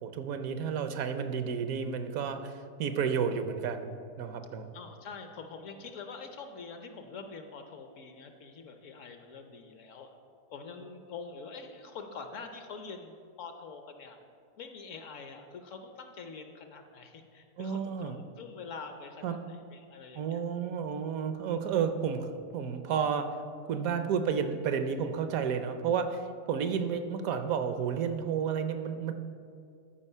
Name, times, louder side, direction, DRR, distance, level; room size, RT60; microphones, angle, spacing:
voice 1, 0.0-4.7 17.6-18.2 19.2-19.4 20.1-23.3 23.7-29.1, right 7 dB, 70° right, 9 dB, 1.0 m, -31 dB
voice 2, 4.7-10.1 10.5-14.2 14.6-20.4, left 4 dB, 60° left, 6 dB, 1.0 m, -45 dB
13.0 x 4.7 x 5.5 m, 2.4 s
omnidirectional pair, 1.6 m